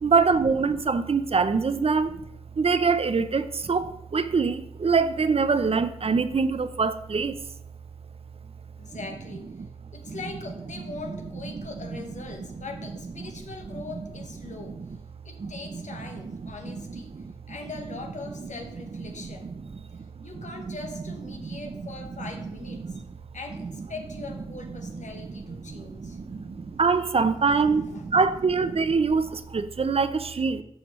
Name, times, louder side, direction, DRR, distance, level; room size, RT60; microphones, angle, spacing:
voice 1, 0.0-2.2 2.6-7.4 9.6-9.7 10.1-10.2 12.4-12.5 13.2-13.3 13.7-13.8 14.4-14.6 15.4-15.8 16.1-17.3 19.2-19.3 20.2-20.8 21.4-21.7 22.2-22.3 22.8-23.0 25.7-30.6, right 4 dB, 55° right, 0.5 m, -25 dB
voice 2, 8.8-9.5 9.9-14.8 15.2-17.1 17.5-19.5 20.2-23.0 23.3-26.8 27.6-28.3, left 3 dB, 90° left, 1.2 m, -41 dB
13.0 x 4.9 x 3.1 m
wide cardioid pair, 90°, 12 cm